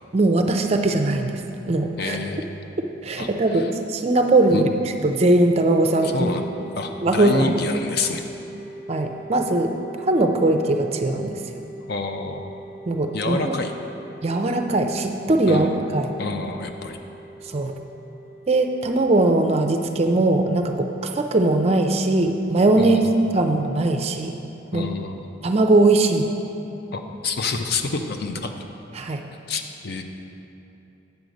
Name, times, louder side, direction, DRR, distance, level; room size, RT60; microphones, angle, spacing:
voice 1, 0.1-1.4 1.7-2.2 3.0-4.7 5.0-6.4 7.0-7.5 8.9-9.8 10.1-11.4 12.9-13.5 14.2-16.1 17.4-17.7 18.5-23.0 23.3-24.4 24.7-24.9 25.4-26.3 28.9-29.2, right 2 dB, 30° right, 5 dB, 0.4 m, -20 dB
voice 2, 2.0-2.5 3.2-3.3 4.5-4.7 6.0-6.5 6.8-8.2 11.9-12.5 13.1-13.7 15.5-15.8 16.2-17.0 22.8-23.1 24.7-25.2 26.9-28.5 29.5-30.0, left 3 dB, 55° left, 5 dB, 0.6 m, -27 dB
sound 1, 5.8-23.2, right 1 dB, 25° left, 1.4 m, -42 dB
8.3 x 6.3 x 5.2 m, 3.0 s
head